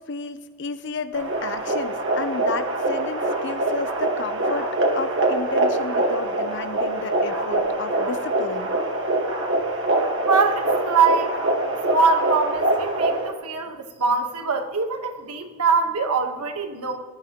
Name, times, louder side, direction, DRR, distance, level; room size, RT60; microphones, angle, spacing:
voice 1, 0.0-8.7, left 4 dB, 55° left, 11 dB, 0.7 m, -32 dB
sound 1, 1.1-13.3, right 2 dB, 55° right, 1.6 m, -24 dB
voice 2, 10.2-11.3 11.9-17.0, right 4 dB, 85° right, 5 dB, 1.4 m, -23 dB
19.0 x 12.0 x 3.0 m, 1.5 s
head